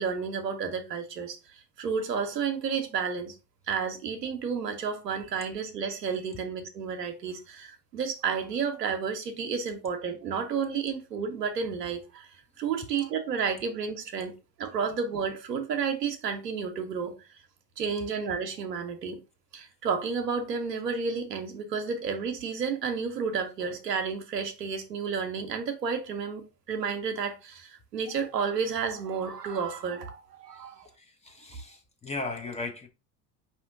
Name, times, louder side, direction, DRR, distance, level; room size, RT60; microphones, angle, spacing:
voice 1, 0.0-1.4 1.8-3.4 3.7-12.3 12.6-14.3 14.6-17.1 17.8-19.2 19.5-30.9, right 6 dB, 80° right, 0.9 m, -31 dB
voice 2, 30.5-32.9, left 3 dB, 15° left, 0.7 m, -38 dB
5.0 x 2.9 x 3.6 m
figure-of-eight pair, 65°, 49 cm